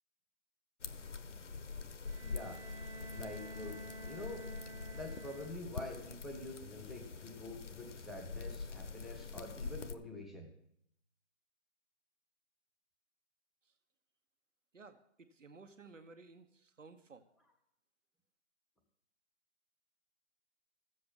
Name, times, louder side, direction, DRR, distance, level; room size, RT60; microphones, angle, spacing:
sound 1, 0.8-10.0, left 4 dB, 75° left, 1.0 m, -45 dB
Bowed string instrument, 2.0-6.0, right 2 dB, 30° right, 1.1 m, -51 dB
voice 1, 2.2-2.6 3.1-3.8 4.1-4.5 4.9-10.5, left 2 dB, ahead, 0 dB, 0.4 m, -46 dB
voice 2, 14.7-17.3, right 4 dB, 90° right, 8 dB, 1.3 m, -56 dB
14.5 x 7.8 x 5.4 m, 0.72 s
figure-of-eight pair, 160°, 36 cm